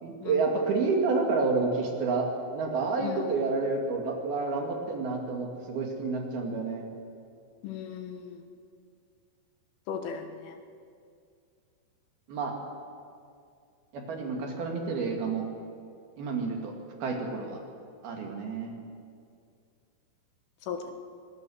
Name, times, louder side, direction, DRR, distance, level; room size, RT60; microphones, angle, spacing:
voice 1, 0.0-6.9 12.3-12.6 13.9-15.5 16.2-16.7 17.0-17.6 18.0-18.7, right 4 dB, 55° right, 1 dB, 3.7 m, -29 dB
voice 2, 7.6-8.4 9.9-10.5 20.7-20.9, left 7 dB, 80° left, 5 dB, 4.0 m, -37 dB
25.5 x 19.5 x 6.4 m, 2.3 s
omnidirectional pair, 5.7 m